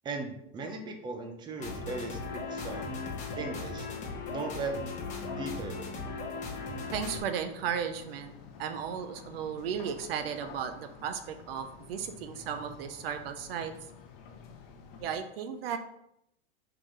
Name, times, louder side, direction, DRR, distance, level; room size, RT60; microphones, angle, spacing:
voice 1, 0.0-2.9 3.3-3.9 4.3-4.7 5.3-6.0, right 3 dB, 15° right, 4 dB, 0.6 m, -38 dB
sound 1, 1.6-7.2, left 4 dB, 25° left, 1.3 m, -38 dB
sound 2, 1.8-15.2, left 5 dB, 55° left, 1.1 m, -51 dB
voice 2, 6.9-8.3 8.6-13.7 15.0-15.8, right 7 dB, 75° right, 8 dB, 0.8 m, -35 dB
4.8 x 3.9 x 5.0 m, 0.78 s
supercardioid pair, 145°, 30 cm